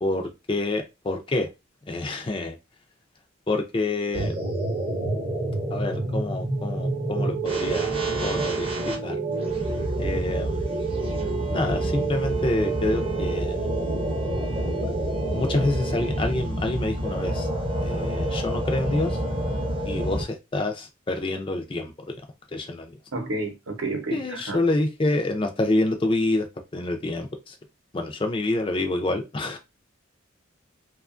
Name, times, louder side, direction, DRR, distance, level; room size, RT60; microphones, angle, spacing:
voice 1, 0.0-1.5 1.9-2.6 3.5-4.4 5.7-9.2 10.0-11.0 11.5-13.7 15.3-17.5 17.8-19.2 19.9-21.9 22.5-23.0 24.1-26.5 26.7-27.6 27.9-29.6, left 2 dB, 25° left, 0.3 m, -27 dB
sound 1, 4.1-20.2, right 2 dB, 25° right, 0.5 m, -27 dB
voice 2, 23.1-24.6, right 2 dB, 75° right, 0.7 m, -30 dB
2.8 x 2.3 x 2.4 m
head